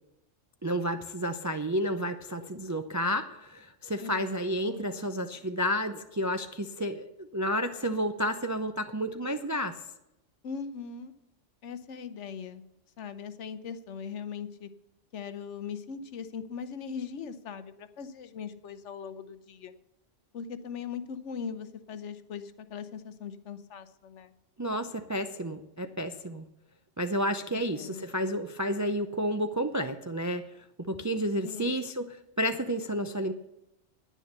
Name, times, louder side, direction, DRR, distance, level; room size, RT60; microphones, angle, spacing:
voice 1, 0.6-9.8 24.6-26.4 27.0-30.5 30.8-33.3, equal, 30° right, 7 dB, 0.3 m, -31 dB
voice 2, 4.0-4.9 10.4-11.1 11.6-12.6 13.0-14.7 15.1-19.7 20.3-24.3 27.5-28.1 31.4-31.8, left 6 dB, 75° left, 12 dB, 1.1 m, -40 dB
10.0 x 9.8 x 6.6 m, 0.89 s
omnidirectional pair, 1.2 m